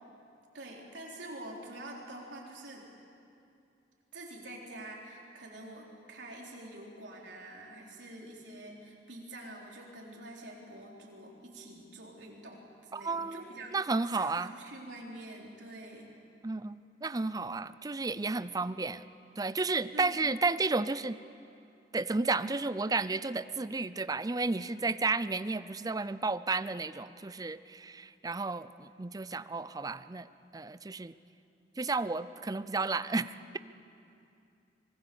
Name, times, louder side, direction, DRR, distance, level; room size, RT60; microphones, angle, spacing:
voice 1, 0.5-2.9 4.1-13.8 14.2-16.1 19.9-20.3, right 1 dB, 90° right, -1 dB, 4.0 m, -46 dB
voice 2, 12.9-13.4 13.7-14.5 16.4-19.0 19.4-21.2 21.9-30.3 30.5-31.1 31.8-33.6, right 3 dB, 20° right, 14 dB, 0.5 m, -32 dB
25.0 x 21.5 x 7.0 m, 2.6 s
head